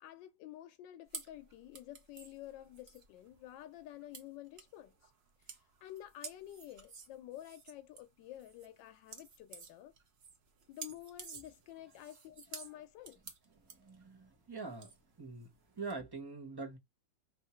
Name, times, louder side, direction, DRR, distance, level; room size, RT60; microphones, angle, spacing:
voice 1, 0.0-5.1 5.4-9.9 10.7-13.2, left 13 dB, 85° left, 1.3 m, -50 dB
sound 1, 1.1-15.9, right 5 dB, 45° right, 0.8 m, -52 dB
voice 2, 13.6-14.9 15.2-15.5 15.7-16.8, right 4 dB, 15° right, 1.0 m, -44 dB
3.4 x 2.8 x 4.3 m
omnidirectional pair, 2.0 m